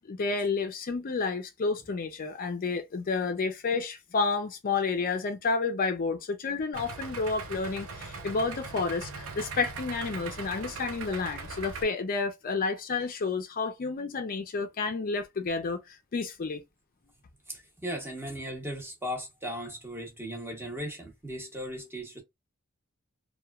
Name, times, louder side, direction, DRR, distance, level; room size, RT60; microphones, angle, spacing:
voice 1, 0.1-16.6, left 4 dB, 40° left, 0.4 m, -30 dB
Idling, 6.7-11.8, right 4 dB, 65° right, 0.7 m, -40 dB
voice 2, 17.5-22.2, equal, 10° right, 0.9 m, -37 dB
3.0 x 2.2 x 2.3 m
head